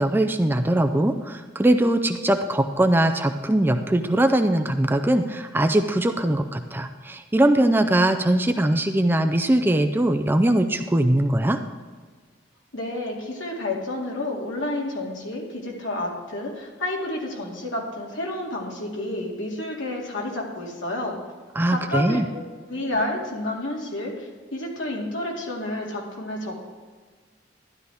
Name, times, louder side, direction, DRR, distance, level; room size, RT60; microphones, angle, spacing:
voice 1, 0.0-11.6 21.6-22.2, right 1 dB, 10° right, 6 dB, 0.4 m, -21 dB
voice 2, 12.7-21.2 21.7-22.4 22.7-26.7, left 1 dB, 80° left, -1 dB, 2.3 m, -30 dB
12.5 x 11.0 x 3.5 m, 1.5 s
head